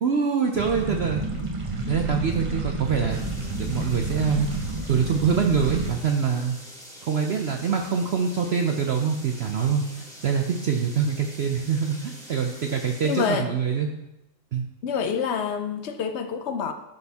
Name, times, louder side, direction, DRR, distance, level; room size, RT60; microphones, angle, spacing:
voice 1, 0.0-1.2 1.9-3.2 3.6-4.5 4.9-6.6 7.0-13.9 14.5-14.7, right 6 dB, 70° right, 3 dB, 0.6 m, -24 dB
sound 1, 0.5-5.9, right 2 dB, 30° right, 0.6 m, -30 dB
sound 2, 3.1-13.3, equal, ahead, 1.2 m, -45 dB
voice 2, 13.0-13.5 14.8-16.7, left 6 dB, 70° left, 8 dB, 0.6 m, -27 dB
12.0 x 4.2 x 3.5 m, 0.91 s
omnidirectional pair, 1.8 m